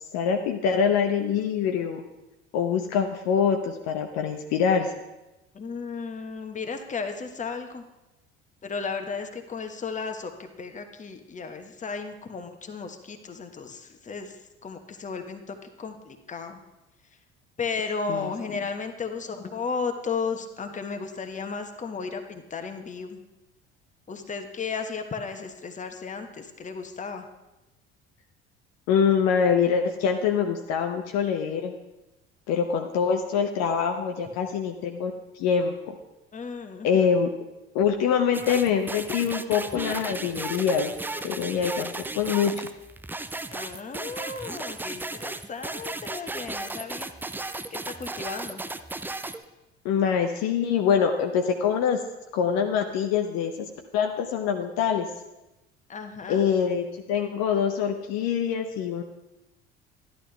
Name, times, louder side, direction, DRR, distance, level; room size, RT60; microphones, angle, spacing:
voice 1, 0.1-2.0 2.5-4.9 18.1-18.3 28.9-31.7 32.5-35.9 36.8-37.3 37.7-40.9 41.2-42.5 49.8-52.0 52.3-53.5 53.9-55.1 56.3-59.0, left 7 dB, 55° left, 4 dB, 0.8 m, -24 dB
voice 2, 5.5-7.8 8.6-10.3 10.6-14.3 14.6-16.6 17.6-23.2 24.1-27.2 36.3-37.1 43.5-47.1 47.7-48.6 55.9-56.4, left 5 dB, 25° left, 6 dB, 1.1 m, -34 dB
sound 1, 38.3-49.4, right 2 dB, 5° right, 0.4 m, -35 dB
12.5 x 11.0 x 3.4 m, 0.99 s
figure-of-eight pair, 60°, 32 cm